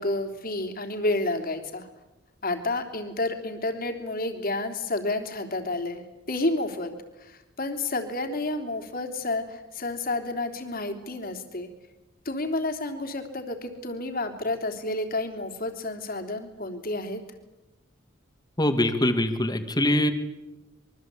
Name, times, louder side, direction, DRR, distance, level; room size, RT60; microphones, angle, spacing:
voice 1, 0.0-1.9 2.4-6.9 7.2-11.7 12.3-17.2, left 2 dB, 50° left, 6 dB, 3.5 m, -30 dB
voice 2, 18.6-20.1, left 1 dB, 20° left, 6 dB, 2.2 m, -23 dB
25.5 x 23.5 x 8.6 m, 1.0 s
head